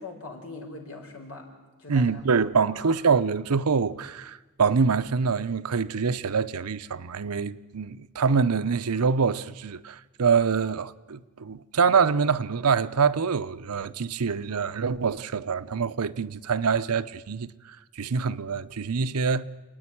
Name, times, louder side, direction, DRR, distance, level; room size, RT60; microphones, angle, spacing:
voice 1, 0.0-1.4 1.8-2.2 2.7-3.0, left 3 dB, 70° left, 4.5 m, -41 dB
voice 2, 1.9-19.4, right 5 dB, 90° right, 0.7 m, -25 dB
27.5 x 9.6 x 10.0 m
head